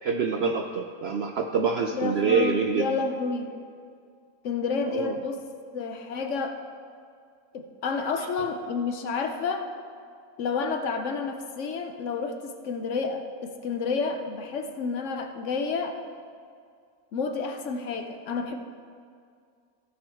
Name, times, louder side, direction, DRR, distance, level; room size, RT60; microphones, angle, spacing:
voice 1, 0.0-2.9 4.9-5.1, right 5 dB, 70° right, 3 dB, 0.6 m, -26 dB
voice 2, 1.9-3.5 4.4-5.4 5.7-6.6 7.5-9.7 10.4-16.0 17.1-18.6, left 4 dB, 65° left, 6 dB, 0.9 m, -30 dB
16.0 x 6.6 x 3.5 m, 2.2 s
omnidirectional pair, 1.5 m